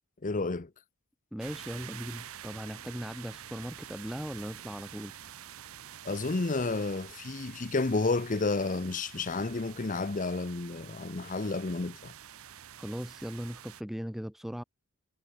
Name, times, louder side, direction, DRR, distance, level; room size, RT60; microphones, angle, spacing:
voice 1, 0.2-0.7 6.0-12.1, left 3 dB, 35° left, 0.8 m, -31 dB
voice 2, 1.3-5.1 12.8-14.6, equal, ahead, 0.4 m, -38 dB
sound 1, 1.4-13.8, right 10 dB, 75° right, 0.8 m, -48 dB
head